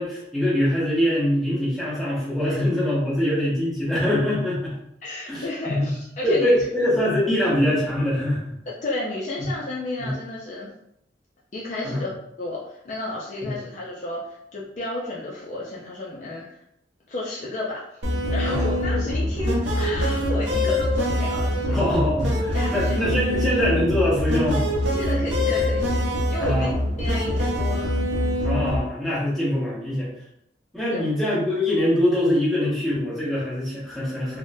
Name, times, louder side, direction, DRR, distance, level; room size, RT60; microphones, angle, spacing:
voice 1, 0.0-4.8 5.3-5.9 6.2-8.5 9.4-9.5 10.0-10.1 11.8-12.0 13.4-13.5 18.5-18.7 21.7-24.6 26.4-26.7 28.4-30.1 30.7-34.4, left 1 dB, ahead, -8 dB, 0.9 m, -23 dB
voice 2, 5.0-6.5 8.7-10.7 11.5-12.1 12.4-16.6 17.1-18.0 18.3-21.8 22.5-23.0 24.9-25.9 26.3-26.7 27.0-27.9 30.9-31.0, left 2 dB, 40° left, -5 dB, 0.4 m, -32 dB
sound 1, 18.0-28.8, left 1 dB, 75° right, 0.6 m, -24 dB
3.5 x 2.1 x 2.6 m, 0.75 s
head